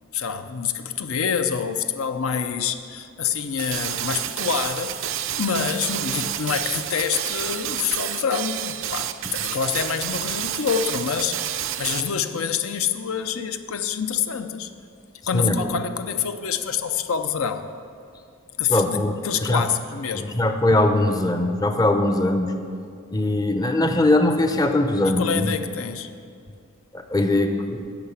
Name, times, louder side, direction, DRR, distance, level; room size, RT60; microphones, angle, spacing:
voice 1, 0.1-14.7 15.3-17.7 18.6-20.4 25.0-26.1, left 7 dB, 75° left, 9 dB, 0.6 m, -27 dB
sound 1, 3.6-12.1, right 11 dB, 60° right, 0.5 m, -29 dB
voice 2, 18.7-19.1 19.4-19.7 20.1-22.5 23.1-25.5 26.9-27.9, left 1 dB, 20° left, 6 dB, 0.5 m, -21 dB
9.8 x 6.4 x 8.2 m, 2.4 s
head